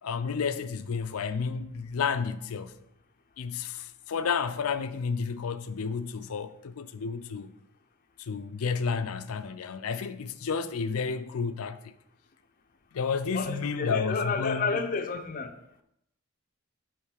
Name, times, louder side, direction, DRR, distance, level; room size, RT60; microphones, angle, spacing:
voice 1, 0.0-2.8 3.4-7.5 8.2-11.9 12.9-14.8, left 5 dB, 85° left, 0.5 m, -31 dB
voice 2, 13.3-15.5, left 4 dB, 40° left, 0.6 m, -30 dB
8.3 x 3.2 x 4.8 m
head